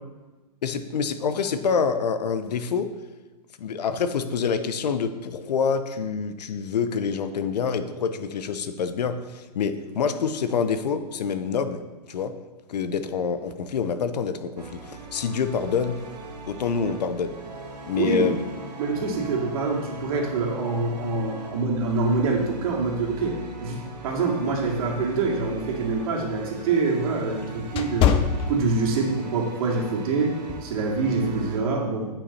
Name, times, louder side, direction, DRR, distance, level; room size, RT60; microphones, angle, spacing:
voice 1, 0.6-2.9 3.6-11.8 12.1-12.3 12.7-16.0 16.5-17.4 17.9-18.4 27.6-27.7, left 6 dB, 80° left, 10 dB, 0.8 m, -26 dB
sound 1, 14.6-31.6, right 2 dB, 80° right, 1.9 m, -40 dB
voice 2, 17.9-18.3 18.8-28.1 28.5-30.4 30.6-32.1, right 3 dB, 60° right, -1 dB, 2.3 m, -25 dB
sound 2, 25.5-29.2 29.6-29.9 30.5-30.8, left 8 dB, 25° left, 0.6 m, -25 dB
9.6 x 5.8 x 4.2 m, 1.2 s
hypercardioid pair, 125°, 21 cm